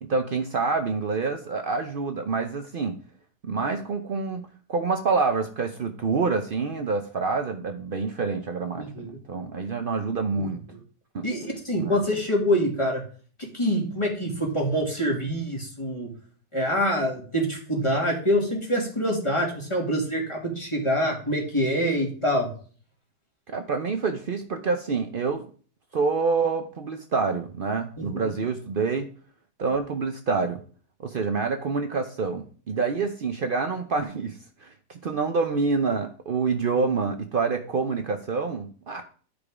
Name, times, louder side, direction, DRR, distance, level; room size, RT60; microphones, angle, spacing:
voice 1, 0.0-3.0 3.4-10.6 11.1-11.3 11.8-12.0 23.5-25.4 25.9-29.1 29.6-30.6 31.0-39.0, right 4 dB, 75° right, 6 dB, 0.5 m, -27 dB
voice 2, 8.8-9.2 10.4-10.5 11.2-13.0 13.5-16.1 16.5-22.5 28.0-28.4, equal, 15° left, -1 dB, 2.3 m, -25 dB
11.5 x 5.2 x 4.8 m, 0.43 s
omnidirectional pair, 1.9 m